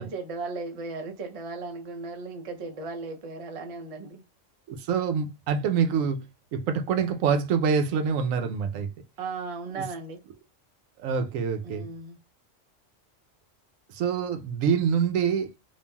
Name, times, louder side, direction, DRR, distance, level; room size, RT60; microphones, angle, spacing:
voice 1, 0.0-4.2 9.2-10.2 11.6-12.2, right 3 dB, 65° right, 0.3 m, -36 dB
voice 2, 4.7-6.2 6.5-8.9 9.8-9.9 11.0-11.8 13.9-15.5, right 6 dB, 90° right, 1.0 m, -25 dB
3.2 x 2.4 x 2.2 m
omnidirectional pair, 1.3 m